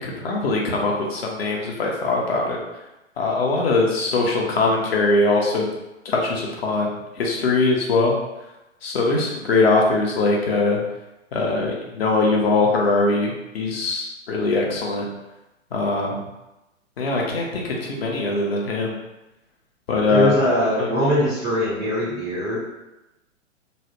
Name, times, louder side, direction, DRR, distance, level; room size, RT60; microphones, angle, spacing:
voice 1, 0.0-2.6 3.2-5.7 6.0-8.2 8.8-10.8 11.3-15.1 15.7-16.2 17.0-18.9 19.9-20.3 20.8-20.9, left 3 dB, 50° left, -1 dB, 0.6 m, -21 dB
voice 2, 20.1-22.6, equal, 5° right, -18 dB, 0.3 m, -21 dB
3.1 x 2.0 x 2.8 m, 0.96 s
figure-of-eight pair, 115°, 39 cm